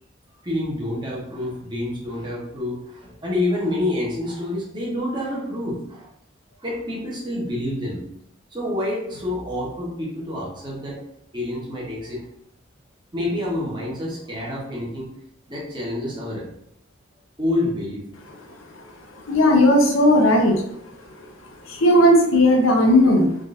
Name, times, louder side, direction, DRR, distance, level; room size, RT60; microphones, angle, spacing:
voice 1, 0.4-6.1 6.6-8.0 8.5-11.0 11.3-12.3 13.1-15.2 15.5-16.5 17.4-18.0, left 1 dB, 25° right, -5 dB, 0.9 m, -28 dB
voice 2, 19.3-20.6 21.6-23.4, left 1 dB, 85° left, 1 dB, 0.7 m, -16 dB
3.6 x 2.5 x 2.5 m, 0.73 s
head